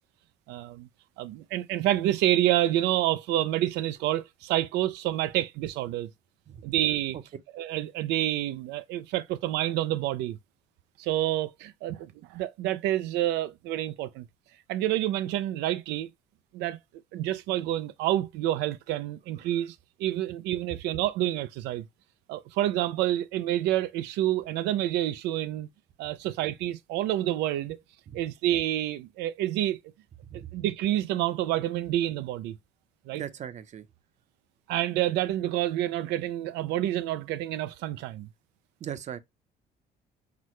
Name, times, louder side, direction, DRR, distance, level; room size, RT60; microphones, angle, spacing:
voice 1, 0.5-0.9 1.2-6.1 6.6-7.2 7.6-10.4 11.0-14.3 14.7-16.1 16.5-16.8 17.1-21.9 22.3-25.7 26.0-27.8 28.1-29.8 30.3-32.6 33.1-33.2 34.7-38.3, right 13 dB, 90° right, 0.4 m, -28 dB
voice 2, 30.2-30.6 33.1-33.9 38.8-39.2, right 9 dB, 45° right, 0.7 m, -39 dB
5.9 x 2.1 x 3.1 m
cardioid pair, 110°, 17 cm